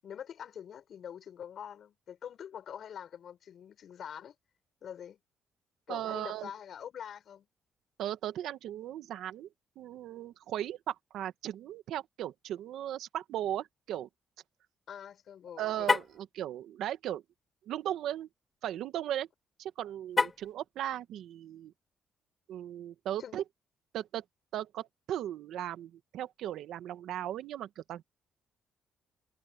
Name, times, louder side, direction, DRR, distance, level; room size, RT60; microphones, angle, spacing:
voice 1, 0.0-4.3 4.8-5.2 5.9-7.5 14.9-15.9 23.2-23.3, left 9 dB, 60° left, 6.2 m, -45 dB
voice 2, 5.9-6.5 8.0-9.5 9.8-14.1 15.6-17.2 17.7-18.3 18.6-19.3 19.6-21.7 22.5-23.4 23.9-24.2 24.5-28.0, right 12 dB, 80° right, 1.5 m, -37 dB
Car, 15.8-16.2 20.1-20.6, left 4 dB, 30° left, 2.0 m, -28 dB
cardioid pair, 90°, 0 cm